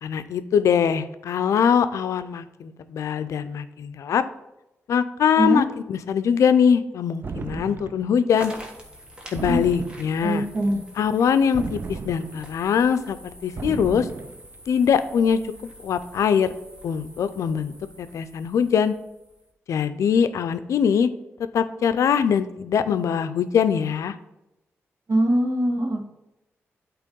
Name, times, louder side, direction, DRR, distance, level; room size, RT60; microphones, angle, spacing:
voice 1, 0.0-4.2 4.9-8.5 9.3-10.4 11.0-14.1 14.7-15.4 15.8-16.5 16.8-18.9 19.7-21.1 21.5-24.1, left 7 dB, 80° left, 12 dB, 0.4 m, -22 dB
sound 1, 7.2-8.1 9.3-10.3 11.5-12.6 13.6-14.4, right 4 dB, 40° right, 0.4 m, -34 dB
sound 2, 8.3-19.5, right 1 dB, 20° right, 1.4 m, -46 dB
voice 2, 10.2-10.8 25.1-26.0, right 1 dB, 65° right, 2 dB, 1.4 m, -22 dB
8.3 x 3.0 x 5.2 m, 0.91 s
cardioid pair, 75°, 5 cm